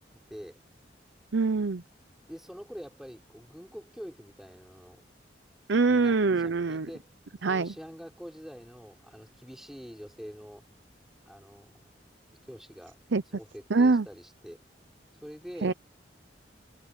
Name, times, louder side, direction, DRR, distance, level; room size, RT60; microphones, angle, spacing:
voice 1, 0.3-0.6 2.3-5.0 5.9-7.1 7.4-10.6 11.3-11.8 12.4-13.0 13.3-14.6 15.2-15.7, equal, ahead, 6.2 m, -45 dB
voice 2, 1.3-1.8 5.7-6.9 7.4-7.7 13.1-13.2 13.7-14.1 15.6-15.7, right 4 dB, 80° right, 0.7 m, -24 dB
head